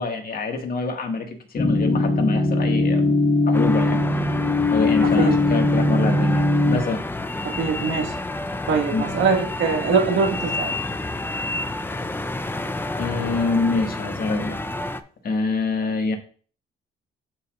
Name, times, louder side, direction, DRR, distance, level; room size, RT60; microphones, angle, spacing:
voice 1, 0.0-4.0 4.7-7.0 8.9-9.0 13.0-14.6 15.2-16.2, left 3 dB, 50° left, 3 dB, 1.6 m, -25 dB
sound 1, 1.6-6.8, left 2 dB, 30° left, 1.1 m, -20 dB
sound 2, 3.5-15.0, left 2 dB, 10° left, 0.5 m, -29 dB
voice 2, 5.0-5.4 7.4-8.2 8.7-10.7, right 5 dB, 70° right, 2 dB, 1.5 m, -22 dB
11.0 x 4.8 x 2.4 m, 0.43 s
cardioid pair, 90°, 20 cm